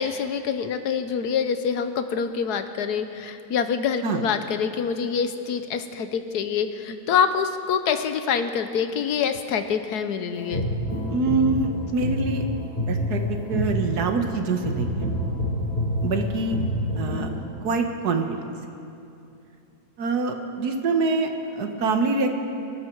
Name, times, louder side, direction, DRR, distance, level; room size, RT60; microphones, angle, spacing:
voice 1, 0.0-10.6, left 7 dB, 85° left, 9 dB, 1.4 m, -26 dB
sound 1, 10.3-17.3, left 1 dB, 35° left, 4.6 m, -27 dB
voice 2, 11.1-12.4 12.9-15.1 16.0-16.6 17.0-17.3 17.6-18.2 20.0-22.3, right 4 dB, 80° right, 4 dB, 1.8 m, -25 dB
25.0 x 12.5 x 4.6 m, 2.7 s
omnidirectional pair, 1.6 m